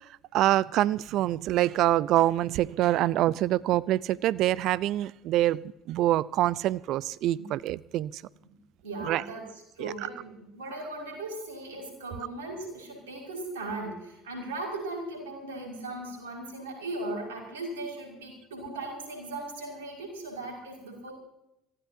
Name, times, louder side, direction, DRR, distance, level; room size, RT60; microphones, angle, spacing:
voice 1, 0.3-8.2 9.0-9.2 9.8-10.1, right 14 dB, 60° right, 21 dB, 0.6 m, -25 dB
voice 2, 8.8-21.1, right 2 dB, 85° right, 0 dB, 5.6 m, -38 dB
26.0 x 16.0 x 2.8 m, 0.88 s
hypercardioid pair, 65°, 0 cm